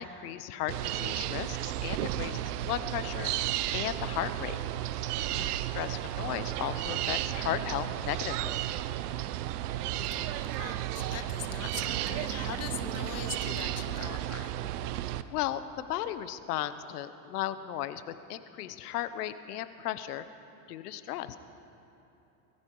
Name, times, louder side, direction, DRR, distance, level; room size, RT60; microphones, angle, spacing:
voice 1, 0.0-4.6 5.7-8.6 15.3-20.2 20.7-21.4, left 12 dB, 80° left, 12 dB, 1.0 m, -35 dB
sound 1, 0.7-15.2, right 13 dB, 80° right, 0.8 m, -33 dB
voice 2, 5.2-5.7 9.9-14.5, left 10 dB, 35° left, 9 dB, 1.0 m, -42 dB
21.5 x 14.0 x 4.7 m, 2.9 s
supercardioid pair, 110°, 46 cm